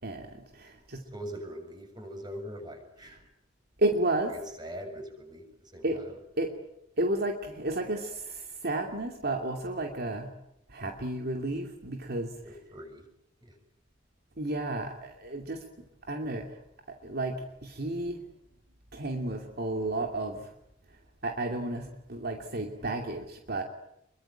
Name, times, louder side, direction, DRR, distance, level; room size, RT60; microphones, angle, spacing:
voice 1, 0.0-1.0 3.8-4.3 5.8-6.0 6.4-6.5 7.0-10.3 10.7-12.4 14.4-15.6 16.0-16.6 16.9-18.2 18.9-20.5 21.2-23.6, right 2 dB, 55° right, 3 dB, 2.7 m, -32 dB
voice 2, 1.1-3.2 4.3-6.2 12.4-13.1 13.4-13.6, equal, 25° right, 5 dB, 7.3 m, -42 dB
28.0 x 23.5 x 9.1 m, 0.80 s
head